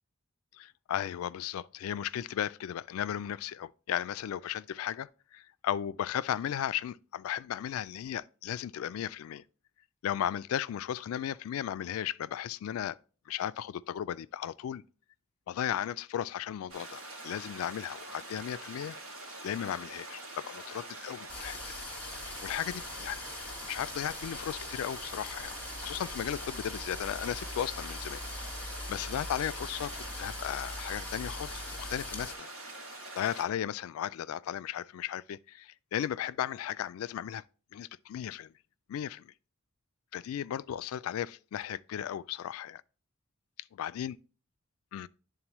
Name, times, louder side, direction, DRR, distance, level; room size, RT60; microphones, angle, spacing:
voice 1, 0.6-9.4 10.0-13.0 13.3-14.8 15.5-19.0 19.2-21.6 22.4-23.2 23.6-28.2 28.9-32.5 33.1-37.4 37.7-38.5 38.9-39.3 40.1-42.8 43.8-44.2 44.9-45.1, left 10 dB, 85° left, 0.3 m, -35 dB
sound 1, 16.7-33.4, right 2 dB, 80° right, 2.2 m, -45 dB
sound 2, 21.3-32.4, left 2 dB, 10° left, 1.2 m, -42 dB
10.5 x 3.9 x 3.0 m
head